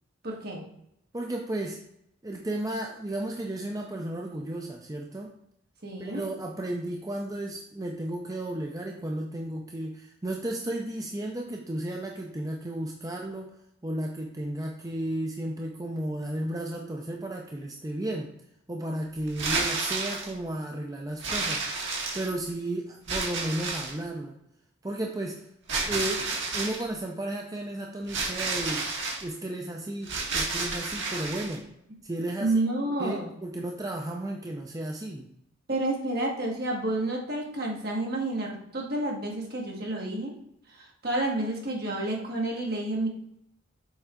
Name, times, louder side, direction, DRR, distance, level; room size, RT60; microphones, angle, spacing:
voice 1, 0.2-0.6 5.8-6.3 32.4-33.4 35.7-40.3 40.7-43.1, right 2 dB, 50° right, -1 dB, 1.8 m, -30 dB
voice 2, 1.1-1.8 2.2-5.3 6.0-13.6 13.8-18.3 18.7-21.7 22.1-24.4 24.8-25.5 25.9-28.9 29.2-31.7 32.0-32.6 33.0-35.3, right 1 dB, 20° right, 1 dB, 0.5 m, -33 dB
sound 1, 19.3-20.3 21.2-22.5 23.1-24.0 25.7-26.8 28.1-29.2 30.0-31.6, right 3 dB, 70° right, 1.9 m, -30 dB
7.1 x 4.5 x 3.7 m, 0.76 s
head